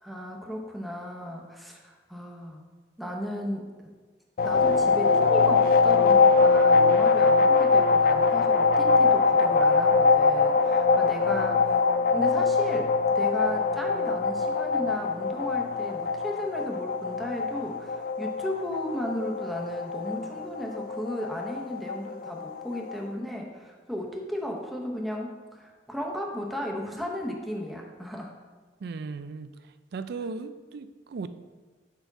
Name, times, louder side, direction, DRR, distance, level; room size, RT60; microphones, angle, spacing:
voice 1, 0.0-2.6 3.0-3.7 4.4-11.8 12.1-28.3, equal, ahead, 0 dB, 0.8 m, -35 dB
sound 1, 4.4-23.0, left 4 dB, 55° left, 0.3 m, -23 dB
voice 2, 28.8-29.5 29.9-31.3, right 4 dB, 60° right, 12 dB, 0.4 m, -36 dB
5.1 x 4.5 x 5.8 m, 1.3 s
head